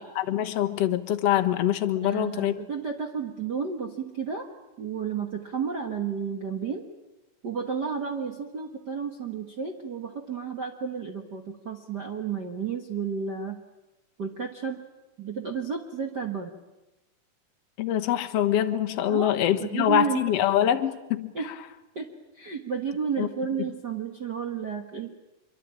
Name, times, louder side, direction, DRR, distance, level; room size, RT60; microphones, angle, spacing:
voice 1, 0.0-2.5 17.8-21.3 23.2-23.3, left 11 dB, 60° left, 8 dB, 1.9 m, -24 dB
voice 2, 2.0-4.5 4.8-6.9 7.4-13.6 14.2-14.8 15.2-16.6 19.1-19.3 19.6-20.3 21.3-21.5 21.9-22.1 22.3-25.1, right 6 dB, 55° right, 2 dB, 1.1 m, -32 dB
25.5 x 23.0 x 8.9 m, 1.0 s
omnidirectional pair, 4.3 m